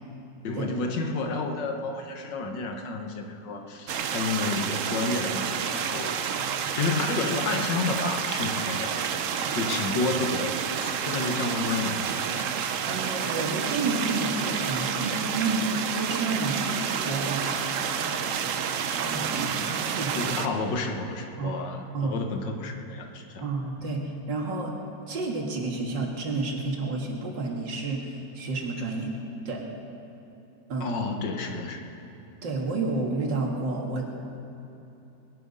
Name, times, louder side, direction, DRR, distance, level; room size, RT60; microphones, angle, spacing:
voice 1, 0.4-6.2 6.8-8.9 9.5-10.5 10.8-12.2 20.2-23.5 30.8-31.9, left 3 dB, 75° left, 4 dB, 1.9 m, -30 dB
sound 1, 3.9-20.5, right 7 dB, 60° right, 0.9 m, -29 dB
voice 2, 12.8-18.2 18.5-20.2 21.4-21.6 21.9-22.2 23.4-24.7 25.1-29.1 29.5-29.6 30.7-30.9 32.4-34.1, right 3 dB, 80° right, 0 dB, 2.5 m, -30 dB
20.5 x 11.0 x 5.4 m, 3.0 s
omnidirectional pair, 1.9 m